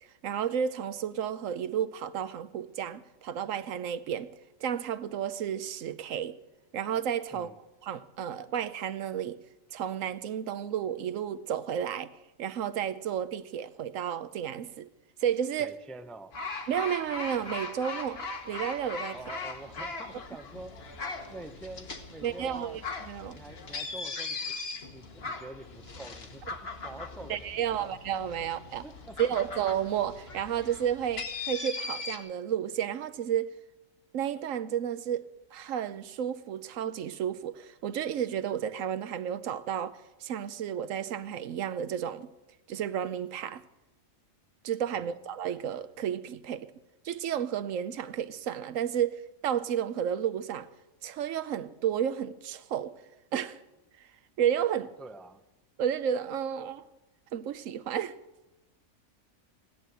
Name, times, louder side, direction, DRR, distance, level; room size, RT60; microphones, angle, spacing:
voice 1, 0.2-4.3 4.6-6.4 6.7-7.5 7.8-9.4 9.7-12.1 12.4-14.9 15.2-15.7 16.7-19.1 22.2-22.8 23.1-23.4 27.3-28.8 29.2-33.5 34.1-35.2 35.5-42.3 42.7-43.6 44.6-46.7 47.0-50.7 51.0-52.9 53.3-53.6 54.4-54.9 55.8-56.9 57.3-58.2, right 9 dB, 75° right, 1.1 m, -32 dB
voice 2, 15.6-16.4 19.1-21.0 21.3-22.8 23.4-24.6 24.9-28.0 28.8-29.2 55.0-55.4, right 2 dB, ahead, 0.4 m, -46 dB
sound 1, 16.3-32.2, left 3 dB, 50° left, 1.5 m, -39 dB
15.5 x 11.0 x 7.9 m
omnidirectional pair, 1.4 m